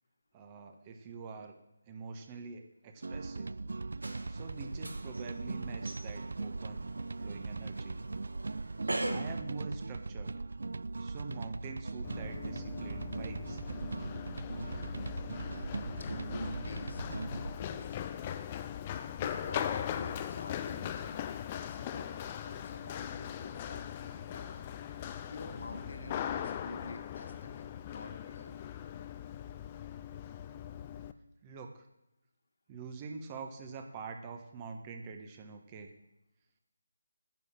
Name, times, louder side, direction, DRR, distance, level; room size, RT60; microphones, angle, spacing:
voice 1, 0.3-1.6 1.9-3.5 4.3-6.9 7.2-8.0 9.1-10.4 11.0-13.6 31.4-31.8 32.7-35.9, right 4 dB, 25° right, 5 dB, 1.3 m, -45 dB
sound 1, 3.0-17.6, right 3 dB, 65° right, 0.3 m, -39 dB
sound 2, 4.0-9.4, right 1 dB, 80° right, 2.2 m, -42 dB
Run, 12.0-31.1, left 10 dB, 25° left, 0.6 m, -40 dB
voice 2, 16.0-17.1 17.5-18.5 19.2-24.6 25.3-28.5, left 2 dB, 60° left, 5 dB, 2.0 m, -48 dB
9.8 x 6.7 x 7.6 m, 0.88 s
figure-of-eight pair, 155°, 0 cm